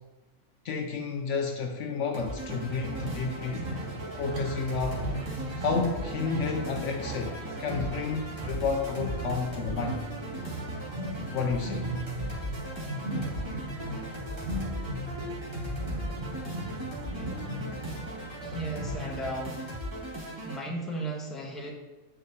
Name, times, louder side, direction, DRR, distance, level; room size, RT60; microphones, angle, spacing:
voice 1, 0.6-3.7 4.2-5.0 5.6-10.0 11.3-11.9, left 4 dB, 70° left, 4 dB, 0.8 m, -31 dB
sound 1, 2.1-20.6, equal, 20° right, 1.5 m, -39 dB
sound 2, 2.5-19.5, right 2 dB, 45° right, 0.9 m, -37 dB
voice 2, 18.4-19.7 20.1-21.7, right 1 dB, ahead, -1 dB, 0.8 m, -36 dB
8.7 x 4.9 x 2.7 m, 1.1 s
omnidirectional pair, 1.4 m